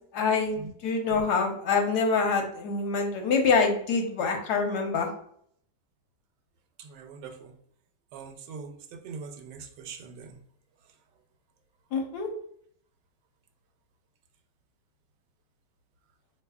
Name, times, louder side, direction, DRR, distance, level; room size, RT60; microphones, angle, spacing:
voice 1, 0.1-5.1 11.9-12.3, left 4 dB, 75° left, 4 dB, 1.2 m, -26 dB
voice 2, 7.0-7.3 8.1-8.7 9.0-10.3, right 5 dB, 85° right, 6 dB, 1.2 m, -41 dB
4.0 x 3.0 x 2.3 m, 0.65 s
omnidirectional pair, 1.8 m